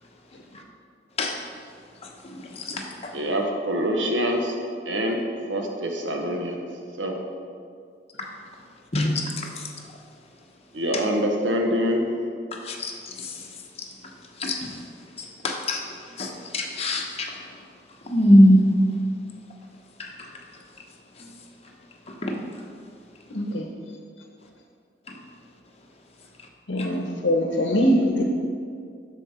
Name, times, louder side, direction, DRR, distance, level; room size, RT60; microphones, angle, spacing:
voice 1, 2.5-3.1 8.2-8.3 8.9-9.3 12.6-12.9 13.2-13.3 14.4-14.6 15.2-15.8 16.2-17.3 18.1-18.6 20.0-20.3 22.2-22.4 26.8-26.9, equal, 35° left, 0 dB, 0.9 m, -21 dB
voice 2, 3.1-4.6 4.9-5.2 5.5-6.6 6.9-7.2 10.7-12.1, equal, 85° right, 2 dB, 1.0 m, -25 dB
voice 3, 23.3-23.7 26.7-28.2, equal, 70° left, 1 dB, 0.8 m, -22 dB
7.7 x 6.4 x 4.2 m, 2.2 s
head